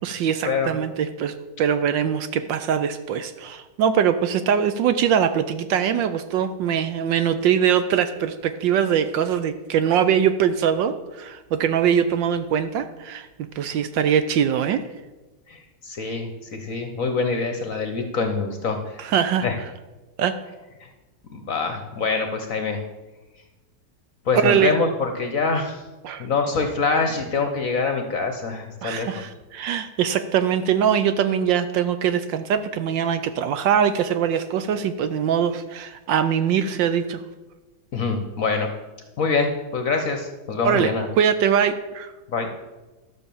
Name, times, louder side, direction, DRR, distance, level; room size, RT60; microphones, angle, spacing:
voice 1, 0.0-13.3 13.6-14.8 19.0-19.5 20.2-20.4 24.3-24.7 26.0-26.3 28.8-37.2 40.6-40.9 41.2-42.1, right 8 dB, 70° right, 10 dB, 1.2 m, -22 dB
voice 2, 15.5-19.1 19.4-19.6 20.8-20.9 21.3-22.8 24.2-25.8 26.2-29.2 37.9-38.7 39.2-41.1 42.3-42.5, left 4 dB, 50° left, 5 dB, 1.1 m, -25 dB
12.0 x 6.2 x 6.9 m, 1.1 s
omnidirectional pair, 2.3 m